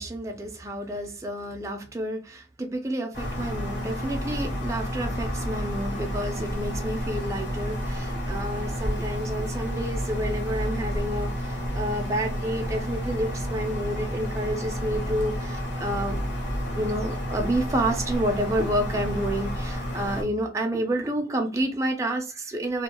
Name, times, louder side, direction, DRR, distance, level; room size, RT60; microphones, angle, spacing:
voice 1, 0.0-16.2 16.8-22.8, right 1 dB, 15° right, 0.4 m, -29 dB
sound 1, 3.1-20.2, equal, 75° left, 1.2 m, -30 dB
2.3 x 2.2 x 2.8 m
head